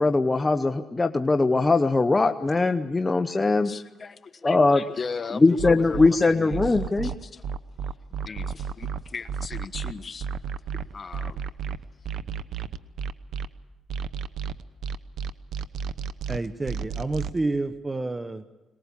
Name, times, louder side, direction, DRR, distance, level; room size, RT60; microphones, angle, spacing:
voice 1, 0.0-3.7 4.4-4.8 5.4-7.1, left 3 dB, 20° left, 0.9 m, -21 dB
voice 2, 3.6-7.4 8.2-10.3 10.9-11.4, left 5 dB, 40° left, 1.4 m, -37 dB
sound 1, 5.6-6.1 6.5-13.5 13.9-17.4, right 7 dB, 70° right, 1.0 m, -32 dB
voice 3, 16.3-18.4, right 2 dB, 20° right, 0.9 m, -29 dB
23.0 x 20.0 x 8.5 m
cardioid pair, 90°, 0 cm